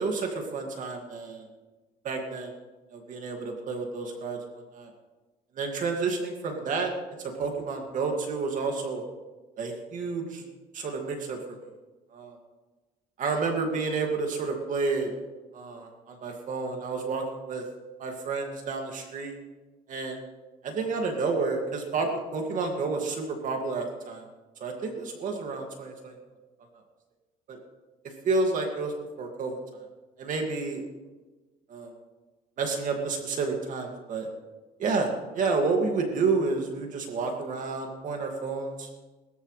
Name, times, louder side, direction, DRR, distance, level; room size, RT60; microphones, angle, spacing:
voice 1, 0.0-1.4 2.0-2.5 2.9-4.9 5.5-6.9 7.2-9.0 9.6-10.4 10.7-11.6 12.1-12.4 13.2-15.1 15.5-17.6 18.0-19.4 19.9-20.2 20.6-24.3 24.6-26.2 27.5-27.6 28.2-29.8 30.2-30.8 31.7-31.9 32.6-34.3 34.8-38.9, right 4 dB, 50° right, 2 dB, 2.2 m, -30 dB
21.5 x 14.0 x 3.3 m, 1.2 s
cardioid pair, 145°, 17 cm